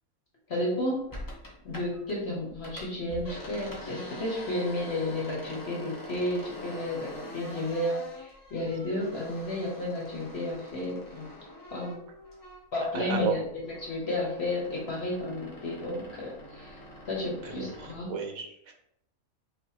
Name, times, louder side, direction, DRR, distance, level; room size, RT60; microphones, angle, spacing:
voice 1, 0.5-1.1 1.6-11.3 11.7-12.0 12.7-16.8 17.1-18.1, left 1 dB, 50° left, -3 dB, 1.2 m, -32 dB
sound 1, 1.1-2.2 2.5-12.8 13.2-18.0, left 1 dB, 20° left, 0.6 m, -44 dB
voice 2, 12.9-13.4 17.4-18.7, right 8 dB, 75° right, 2 dB, 1.2 m, -33 dB
5.1 x 2.5 x 2.8 m, 0.74 s
omnidirectional pair, 1.5 m